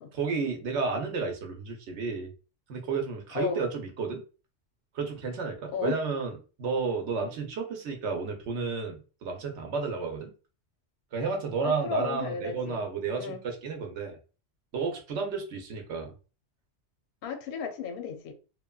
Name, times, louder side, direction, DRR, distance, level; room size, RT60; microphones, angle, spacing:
voice 1, 0.1-2.3 2.7-4.2 4.9-6.3 6.6-10.3 11.1-14.2 14.7-16.1, right 4 dB, 80° right, 0.9 m, -32 dB
voice 2, 5.7-6.0 11.6-12.8 13.2-13.4 17.2-18.3, left 6 dB, 65° left, 0.7 m, -34 dB
3.0 x 2.2 x 2.2 m
omnidirectional pair, 1.2 m